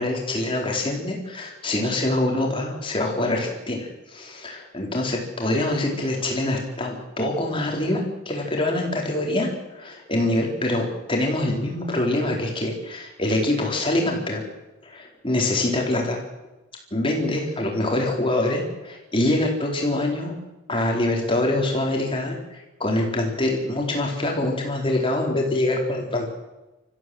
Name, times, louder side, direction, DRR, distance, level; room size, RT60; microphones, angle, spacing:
voice 1, 0.0-14.4 14.8-16.2 16.9-20.4 20.7-26.3, left 1 dB, 25° left, 0 dB, 4.3 m, -25 dB
27.0 x 15.0 x 8.0 m, 1.0 s
head